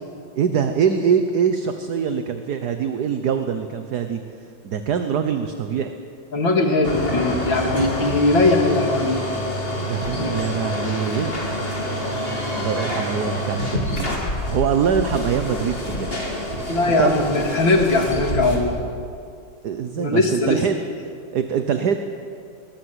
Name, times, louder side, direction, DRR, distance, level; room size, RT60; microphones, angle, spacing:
voice 1, 0.4-4.2 4.6-5.9 9.8-11.4 12.5-16.1 17.0-17.1 19.6-20.7 21.3-22.0, right 7 dB, 60° right, 7 dB, 1.5 m, -23 dB
voice 2, 6.3-9.2 10.2-10.3 16.7-18.8 20.0-20.6, left 2 dB, 80° left, 2 dB, 3.2 m, -20 dB
sound 1, 6.8-18.6, left 1 dB, 30° left, 3.2 m, -27 dB
21.0 x 19.5 x 8.1 m, 2.4 s
omnidirectional pair, 2.1 m